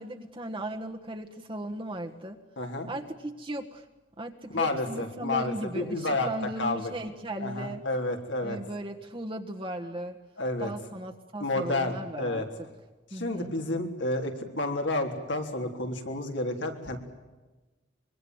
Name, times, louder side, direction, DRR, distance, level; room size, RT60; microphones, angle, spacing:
voice 1, 0.0-2.4 2.9-3.8 4.2-7.8 8.4-10.2 10.6-12.4 13.1-13.5, right 1 dB, 30° right, 2 dB, 1.5 m, -37 dB
voice 2, 2.6-2.9 4.5-6.3 6.6-6.9 7.4-8.6 10.4-10.7 11.4-12.5 13.1-17.0, left 2 dB, 75° left, 3 dB, 3.8 m, -30 dB
25.0 x 23.0 x 8.0 m, 1.2 s
head